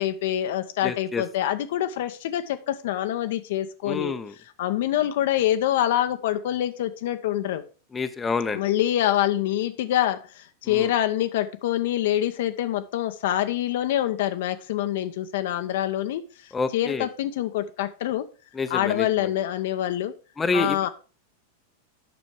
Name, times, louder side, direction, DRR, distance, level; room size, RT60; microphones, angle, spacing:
voice 1, 0.0-4.1 4.6-7.6 8.5-18.3 18.7-20.1 20.5-20.9, left 12 dB, 55° left, 9 dB, 0.7 m, -25 dB
voice 2, 0.8-1.2 3.9-4.3 7.9-8.6 10.7-10.9 16.5-17.1 18.5-19.3 20.4-20.9, left 4 dB, 15° left, 9 dB, 0.7 m, -28 dB
9.3 x 6.2 x 4.7 m, 0.36 s
figure-of-eight pair, 90°, 0 cm